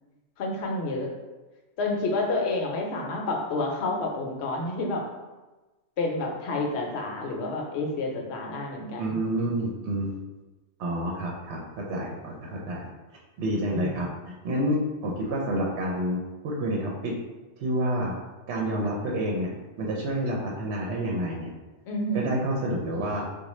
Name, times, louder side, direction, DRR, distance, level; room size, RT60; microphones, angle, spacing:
voice 1, 0.4-1.1 1.8-5.0 6.0-9.2 13.7-14.1 21.9-22.3, left 2 dB, 70° left, 0 dB, 0.9 m, -29 dB
voice 2, 9.0-10.2 10.8-12.9 13.4-17.1 17.6-18.1 18.5-19.5 19.8-21.5 22.1-23.3, equal, 70° right, -2 dB, 0.8 m, -29 dB
3.8 x 2.3 x 3.0 m, 1.2 s
omnidirectional pair, 1.2 m